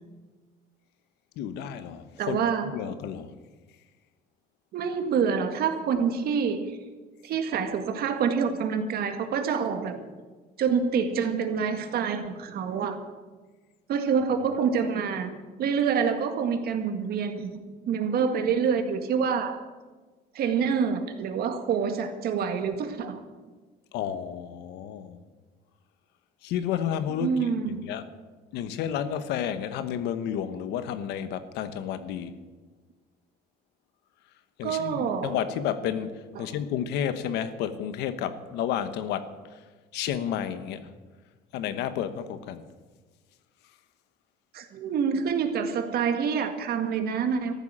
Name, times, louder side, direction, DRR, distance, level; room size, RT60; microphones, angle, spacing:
voice 1, 1.4-2.4 2.7-3.3 23.9-25.2 26.4-28.1 28.5-32.3 34.6-39.5 39.9-40.9 41.5-42.6, left 9 dB, 90° left, 11 dB, 1.2 m, -31 dB
voice 2, 2.2-2.7 4.7-6.7 7.2-10.0 10.6-13.0 13.9-15.3 15.6-17.6 17.9-19.6 20.3-23.2 27.2-27.8 34.6-35.4 36.4-36.6 44.5-47.5, right 6 dB, 65° right, 7 dB, 1.8 m, -27 dB
14.0 x 11.0 x 7.5 m, 1.3 s
cardioid pair, 110°, 17 cm